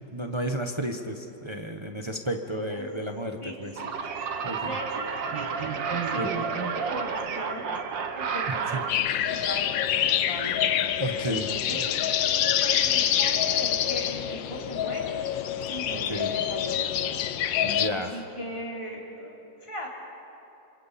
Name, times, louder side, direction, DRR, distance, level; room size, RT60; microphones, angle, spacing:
voice 1, 0.1-3.7 4.4-4.7 6.2-6.3 8.5-8.8 11.0-11.8 15.9-16.3 17.6-18.2, right 1 dB, 25° right, 4 dB, 0.7 m, -32 dB
voice 2, 3.4-3.9 4.6-12.0 12.6-17.1 17.5-17.7 17.9-19.9, equal, 15° left, -4 dB, 3.8 m, -39 dB
sound 1, 3.8-8.9, right 6 dB, 75° right, 1.9 m, -30 dB
sound 2, 8.9-17.9, left 10 dB, 80° left, 1.5 m, -26 dB
28.5 x 25.5 x 4.2 m, 2.9 s
omnidirectional pair, 2.0 m